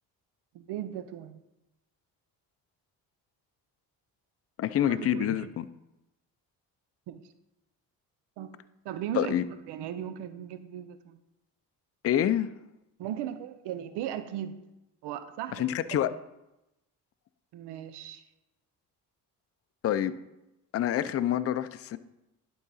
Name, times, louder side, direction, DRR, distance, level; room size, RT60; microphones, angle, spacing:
voice 1, 0.5-1.4 4.9-5.5 7.1-7.2 8.4-8.5 8.8-9.4 9.7-11.2 13.0-14.6 15.0-16.0 17.5-18.2, right 11 dB, 70° right, 11 dB, 0.7 m, -37 dB
voice 2, 4.6-5.6 9.1-9.5 12.0-12.5 15.5-16.1 19.8-20.3 20.7-22.0, left 11 dB, 35° left, 13 dB, 0.5 m, -27 dB
11.5 x 3.9 x 4.1 m, 0.93 s
supercardioid pair, 70°, 42 cm